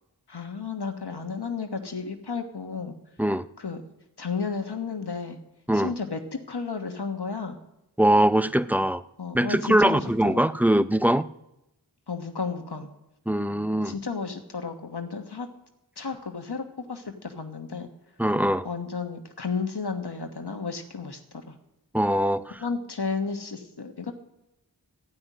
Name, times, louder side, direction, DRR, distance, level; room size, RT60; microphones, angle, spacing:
voice 1, 0.3-3.0 3.6-3.8 4.2-5.4 5.7-6.2 6.5-7.6 9.2-10.4 12.1-12.9 13.8-15.5 16.0-17.9 18.6-21.6 22.6-24.1, left 5 dB, 90° left, 5 dB, 1.4 m, -33 dB
voice 2, 8.0-9.0 9.3-11.3 13.3-13.9 18.2-18.7 21.9-22.6, right 1 dB, 5° right, 13 dB, 0.5 m, -22 dB
14.5 x 5.8 x 9.4 m, 0.87 s
wide cardioid pair, 45°, 38 cm